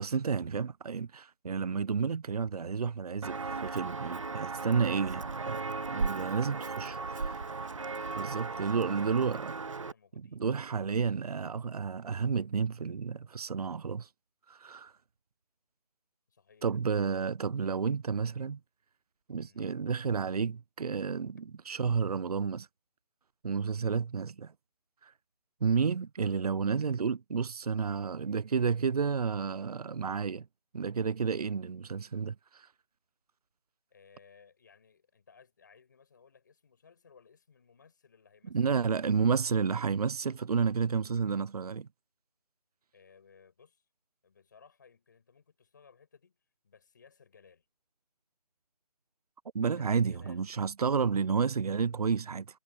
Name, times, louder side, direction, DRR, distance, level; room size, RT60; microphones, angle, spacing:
voice 1, 0.0-5.6 5.9-6.9 8.2-9.5 10.2-14.1 14.5-14.9 16.6-18.6 19.3-22.7 23.4-24.5 25.0-25.1 25.6-30.5 30.7-32.7 38.5-41.9 49.5-52.5, right 6 dB, 70° right, 0.5 m, -31 dB
Walk footsteps, 3.2-9.9, right 4 dB, 50° right, 1.9 m, -36 dB
voice 2, 6.8-7.2 8.4-10.4 16.3-16.8 19.4-19.6 33.9-38.8 42.9-43.9 44.2-46.4 46.6-47.7 49.7-50.5 51.1-51.3, left 6 dB, 30° left, 7.6 m, -60 dB
hypercardioid pair, 180°, 21 cm